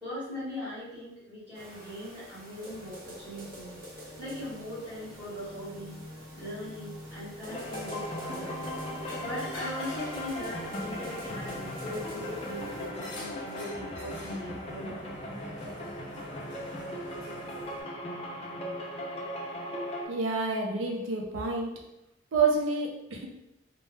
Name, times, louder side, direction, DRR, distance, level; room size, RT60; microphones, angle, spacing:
voice 1, 0.0-3.7 4.2-5.9 6.4-8.5 9.2-15.0, left 1 dB, 5° right, -13 dB, 1.0 m, -40 dB
sound 1, 1.5-12.9, equal, 50° right, 0.8 m, -44 dB
sound 2, 7.5-20.1, left 1 dB, 30° left, 0.3 m, -38 dB
sound 3, 8.6-17.8, left 1 dB, 60° left, 0.7 m, -48 dB
voice 2, 20.1-21.7 22.3-23.3, right 4 dB, 80° right, 0 dB, 0.5 m, -28 dB
2.1 x 2.0 x 3.1 m, 0.88 s
head